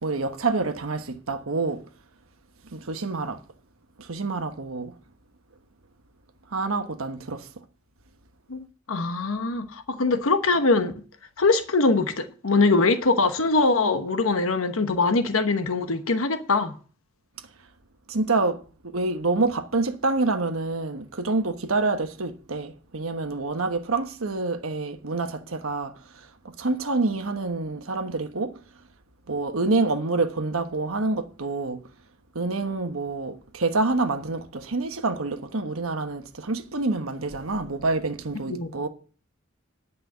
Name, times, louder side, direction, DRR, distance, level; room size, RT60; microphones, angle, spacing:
voice 1, 0.0-1.8 2.7-3.4 4.0-4.9 6.5-7.5 18.1-18.6 18.9-25.9 26.6-28.5 29.3-31.8 32.3-38.9, right 3 dB, 85° right, 1.2 m, -27 dB
voice 2, 8.5-10.9 11.4-16.7 38.5-38.7, left 3 dB, 75° left, 1.0 m, -22 dB
10.0 x 5.6 x 8.2 m
head